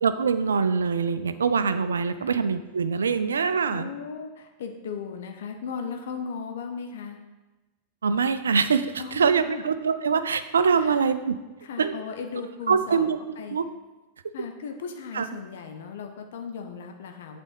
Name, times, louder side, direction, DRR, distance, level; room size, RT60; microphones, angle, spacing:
voice 1, 0.0-3.9 8.0-11.4 11.8-12.0 12.7-13.2 13.5-13.7 15.1-15.3, right 5 dB, 70° right, 12 dB, 0.4 m, -24 dB
voice 2, 3.7-7.2 9.0-9.6 10.7-11.1 11.6-13.1 13.4-13.6 14.3-17.4, left 6 dB, 60° left, 5 dB, 0.8 m, -37 dB
8.1 x 4.4 x 5.4 m, 1.1 s
figure-of-eight pair, 90°, 0 cm